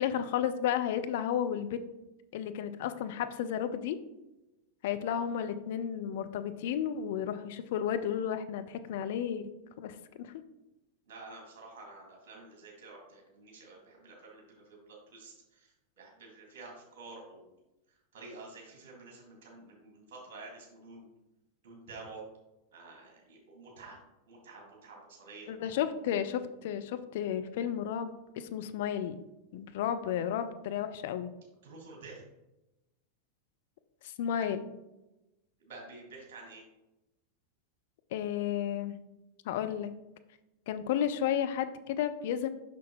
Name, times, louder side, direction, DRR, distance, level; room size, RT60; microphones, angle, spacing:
voice 1, 0.0-1.8 2.3-4.0 4.8-9.5 9.8-10.3 25.5-29.2 29.5-31.3 34.2-34.6 38.1-39.0 39.5-39.9 40.7-42.5, left 9 dB, 55° left, 10 dB, 0.4 m, -32 dB
voice 2, 11.1-17.5 18.1-21.1 21.6-22.2 22.7-24.0 24.3-25.5 31.6-32.2 35.6-36.6, right 3 dB, 50° right, -2 dB, 2.1 m, -49 dB
6.0 x 5.8 x 3.0 m, 0.96 s
figure-of-eight pair, 90°, 0 cm